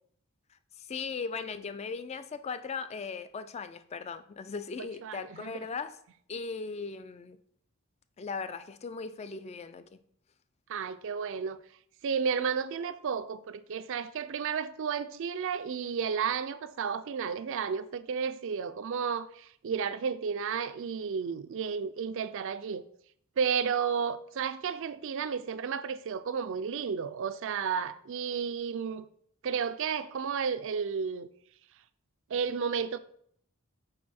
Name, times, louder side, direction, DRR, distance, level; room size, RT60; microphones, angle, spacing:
voice 1, 0.8-6.0 6.3-7.4 8.2-10.0, left 5 dB, 30° left, 0.3 m, -38 dB
voice 2, 4.8-5.7 10.7-11.6 12.0-22.8 23.4-29.1 29.4-31.3 32.3-33.0, right 6 dB, 55° right, 0.4 m, -32 dB
6.4 x 4.7 x 4.3 m
head